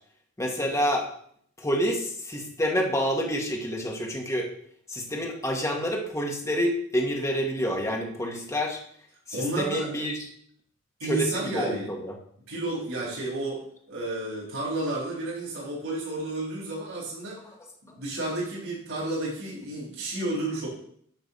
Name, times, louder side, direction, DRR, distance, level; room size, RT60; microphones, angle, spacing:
voice 1, 0.4-1.0 1.6-4.5 4.9-8.8 9.3-10.3 11.0-12.1, equal, 15° left, 0 dB, 1.5 m, -28 dB
voice 2, 9.3-9.9 11.0-11.9 12.5-13.6 13.9-17.4 17.9-20.7, right 2 dB, 85° right, -5 dB, 4.0 m, -31 dB
9.2 x 4.0 x 6.7 m, 0.65 s
head